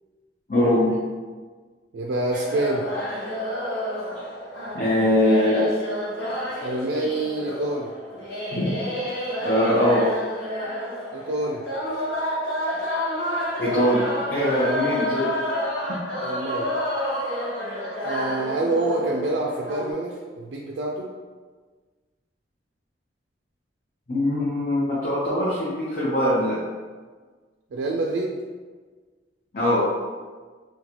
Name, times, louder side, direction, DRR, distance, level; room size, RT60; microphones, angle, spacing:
voice 1, 0.5-1.0 4.7-5.7 8.5-8.7 9.4-10.1 13.6-15.3 15.9-16.0 24.1-26.6 29.5-29.9, left 1 dB, 50° left, -8 dB, 0.7 m, -22 dB
voice 2, 1.9-2.8 6.6-7.9 11.1-11.6 16.2-16.8 18.0-21.1 27.7-28.4, right 2 dB, 80° right, -1 dB, 0.3 m, -27 dB
sound 1, 2.3-19.9, equal, 80° left, 1.2 m, -29 dB
3.8 x 2.3 x 2.9 m, 1.4 s
head